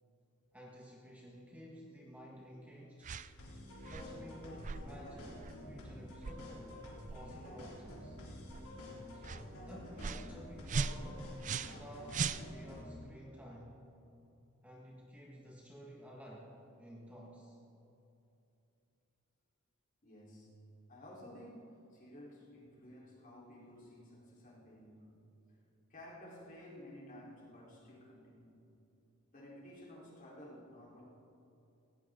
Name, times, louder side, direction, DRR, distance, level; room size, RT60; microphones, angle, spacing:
voice 1, 0.5-3.1 3.8-6.8 7.1-8.2 9.1-13.9 14.6-17.6, equal, 5° right, -3 dB, 1.5 m, -52 dB
sound 1, 3.0-3.3 3.8-4.1 4.6-4.8 5.4-5.6 6.2-6.4 7.0-7.2 7.8-8.0 8.5-8.6 9.2-9.4 10.0-10.3 10.7-11.8 12.1-12.8, right 5 dB, 35° right, 0.4 m, -38 dB
sound 2, 3.4-13.0, left 1 dB, 90° left, 3.4 m, -49 dB
voice 2, 20.0-20.5 20.9-25.1 25.9-28.6 29.3-31.0, left 1 dB, 40° left, -5 dB, 3.9 m, -53 dB
18.0 x 17.0 x 3.8 m, 2.8 s
head